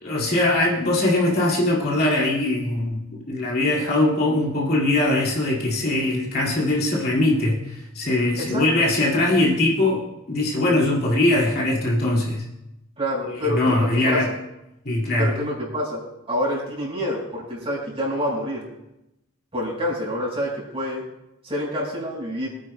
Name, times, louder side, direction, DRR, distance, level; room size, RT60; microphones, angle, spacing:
voice 1, 0.0-3.0 3.3-10.0 10.3-12.5 13.4-14.3 14.8-15.3, left 2 dB, 50° left, -3 dB, 2.4 m, -21 dB
voice 2, 13.0-14.3 15.2-16.0 16.3-18.7 19.5-21.0 21.4-22.5, equal, 30° right, -4 dB, 4.8 m, -27 dB
24.5 x 9.3 x 2.2 m, 0.88 s
head